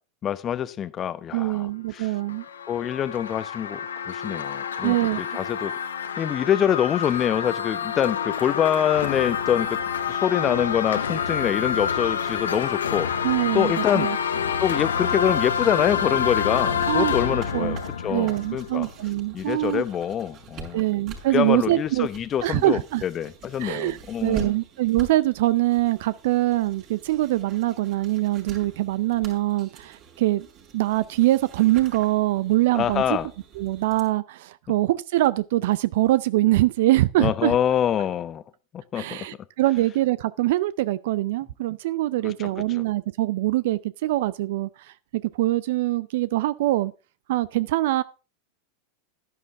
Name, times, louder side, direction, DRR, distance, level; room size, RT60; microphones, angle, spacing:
voice 1, 0.2-2.1 2.7-3.8 4.0-5.7 6.2-9.8 10.1-13.1 13.5-14.1 14.6-18.9 19.3-20.8 21.3-24.5 32.7-33.3 37.2-38.4 38.7-39.3 42.2-42.5, left 9 dB, 35° left, 0.8 m, -25 dB
voice 2, 1.3-2.4 4.8-5.2 13.2-14.2 16.9-17.1 17.5-17.8 18.1-19.8 20.7-22.1 22.4-23.0 23.6-30.5 30.7-33.2 33.6-37.5 39.0-44.7 45.1-46.9 47.3-48.0, right 16 dB, 65° right, 0.5 m, -23 dB
sound 1, 2.0-19.0, left 7 dB, 85° left, 1.0 m, -28 dB
sound 2, 15.2-34.0, right 5 dB, 45° right, 4.9 m, -45 dB
11.0 x 11.0 x 3.5 m
hypercardioid pair, 95°, 0 cm